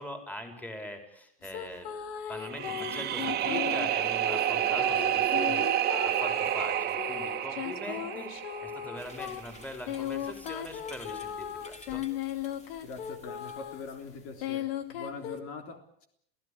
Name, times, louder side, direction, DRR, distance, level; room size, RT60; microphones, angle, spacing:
voice 1, 0.0-1.9 2.3-5.7 6.0-8.3 8.6-12.0, left 1 dB, 5° left, 5 dB, 4.6 m, -42 dB
sound 1, 1.4-13.9 14.4-15.4, left 10 dB, 75° left, 2.7 m, -37 dB
sound 2, 2.4-9.5, right 11 dB, 35° right, 2.2 m, -30 dB
sound 3, 9.0-14.6, left 3 dB, 25° left, 3.9 m, -53 dB
voice 2, 12.8-16.1, left 4 dB, 50° left, 6 dB, 3.6 m, -43 dB
28.0 x 16.5 x 8.5 m, 0.70 s
supercardioid pair, 125°, 29 cm